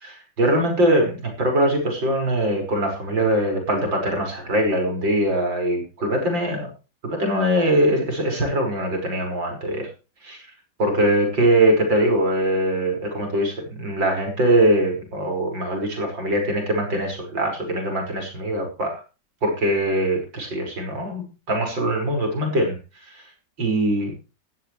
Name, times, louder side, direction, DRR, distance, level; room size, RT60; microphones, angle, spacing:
voice 1, 0.0-6.7 7.0-9.9 10.2-10.4 10.8-19.0 19.4-22.8 23.0-23.2 23.6-24.1, right 1 dB, 80° right, 3 dB, 6.3 m, -22 dB
17.0 x 14.5 x 3.3 m, 0.32 s
omnidirectional pair, 2.0 m